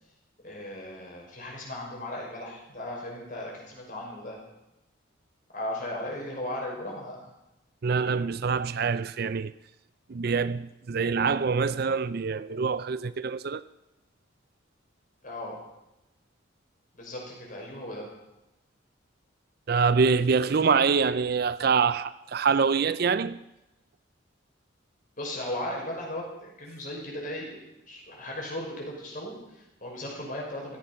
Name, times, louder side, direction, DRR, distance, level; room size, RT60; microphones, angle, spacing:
voice 1, 0.4-4.4 5.5-7.3 15.2-15.6 16.9-18.1 25.2-30.8, left 1 dB, 45° left, 5.9 m, -37 dB
voice 2, 7.8-9.5 10.1-13.6 19.7-23.4, right 5 dB, 50° right, 0.5 m, -25 dB
16.0 x 14.5 x 5.9 m
head